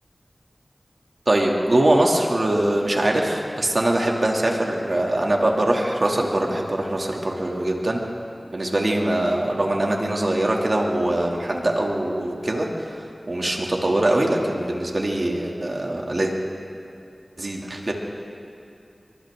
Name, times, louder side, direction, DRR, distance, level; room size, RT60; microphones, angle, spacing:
voice 1, 1.3-8.0 8.5-16.3 17.4-17.9, right 1 dB, 55° right, 0 dB, 2.7 m, -22 dB
28.0 x 24.5 x 3.8 m, 2.6 s
wide cardioid pair, 50°, 0 cm